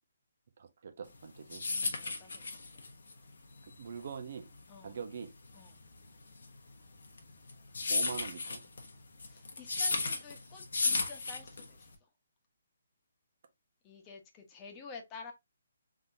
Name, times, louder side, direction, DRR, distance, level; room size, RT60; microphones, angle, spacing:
voice 1, 0.6-1.6 3.8-4.5 4.8-5.3 7.9-8.6, right 6 dB, 55° right, 0.9 m, -43 dB
sound 1, 1.1-11.9, left 3 dB, 75° left, 1.2 m, -35 dB
voice 2, 1.7-2.8 4.7-5.0 5.5-5.8 9.2-11.9 13.8-15.3, left 4 dB, 20° left, 1.2 m, -51 dB
3.8 x 3.7 x 2.8 m
hypercardioid pair, 150°, 0 cm